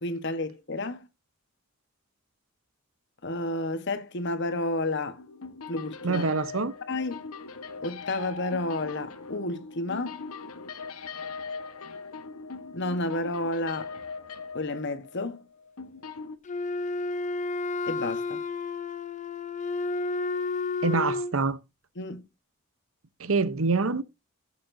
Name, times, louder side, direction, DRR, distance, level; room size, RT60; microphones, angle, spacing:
voice 1, 0.0-1.1 3.2-5.2 5.7-6.2 6.9-7.3 7.8-10.2 12.7-13.9 14.5-15.5 17.9-18.4 22.0-22.2, left 2 dB, 55° left, 1.2 m, -31 dB
sound 1, 5.2-16.4, left 4 dB, 90° left, 1.1 m, -41 dB
voice 2, 6.0-6.7 20.8-21.6 23.2-24.0, right 4 dB, 65° right, 0.8 m, -25 dB
Wind instrument woodwind instrument, 16.4-21.4, left 3 dB, 35° left, 0.6 m, -31 dB
14.0 x 6.8 x 2.6 m
head